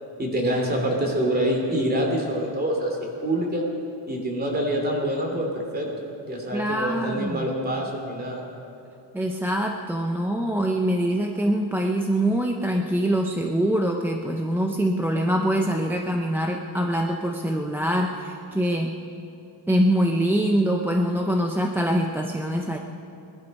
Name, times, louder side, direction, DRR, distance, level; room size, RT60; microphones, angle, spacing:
voice 1, 0.2-3.6 4.1-5.9 6.3-8.4, right 1 dB, 20° right, 1 dB, 2.5 m, -26 dB
voice 2, 6.5-7.5 9.1-18.9 19.7-22.8, right 1 dB, 5° right, 2 dB, 0.4 m, -24 dB
20.0 x 12.0 x 5.3 m, 2.7 s
cardioid pair, 165°, 45 cm